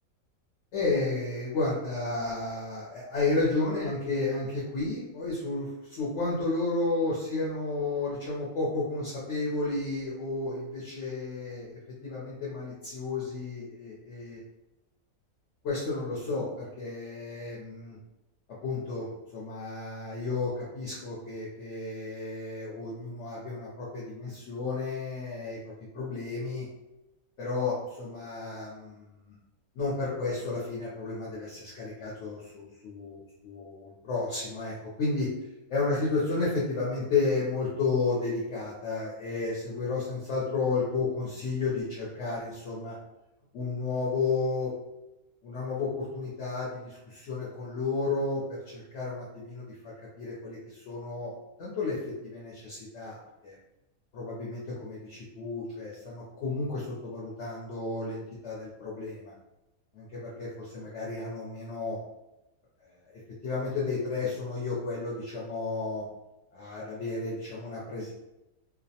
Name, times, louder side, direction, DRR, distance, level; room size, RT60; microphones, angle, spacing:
voice 1, 0.7-14.4 15.6-18.0 18.6-26.7 27.4-29.4 29.7-33.2 33.4-35.3 35.7-43.0 43.5-44.7 45.4-52.0 52.2-53.2 53.4-53.6 54.1-59.3 59.9-62.0 62.8-62.9 63.4-66.1 66.5-68.1, left 3 dB, 65° left, -6 dB, 0.9 m, -32 dB
2.4 x 2.1 x 2.7 m, 0.94 s
omnidirectional pair, 1.5 m